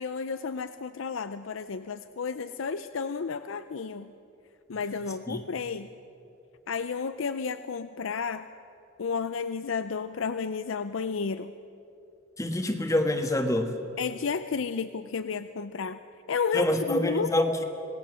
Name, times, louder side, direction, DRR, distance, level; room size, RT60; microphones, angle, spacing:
voice 1, 0.0-4.1 4.7-5.9 6.7-8.5 9.0-11.5 14.0-16.0 16.3-17.3, left 5 dB, 90° left, 11 dB, 0.5 m, -32 dB
voice 2, 12.4-13.8 16.5-17.6, left 1 dB, 15° left, 5 dB, 1.5 m, -26 dB
26.5 x 19.0 x 6.3 m, 2.8 s
head